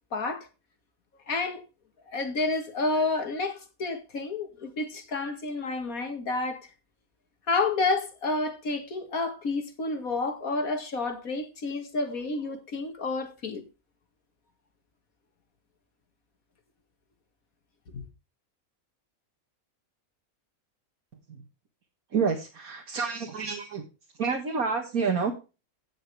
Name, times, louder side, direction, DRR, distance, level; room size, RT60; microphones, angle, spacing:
voice 1, 0.1-0.5 1.3-1.6 2.1-6.7 7.5-13.6 17.9-18.0, left 3 dB, 75° left, 2.5 m, -30 dB
voice 2, 22.1-23.9 24.1-25.3, right 5 dB, 80° right, 2.1 m, -28 dB
16.5 x 6.6 x 3.4 m
omnidirectional pair, 1.5 m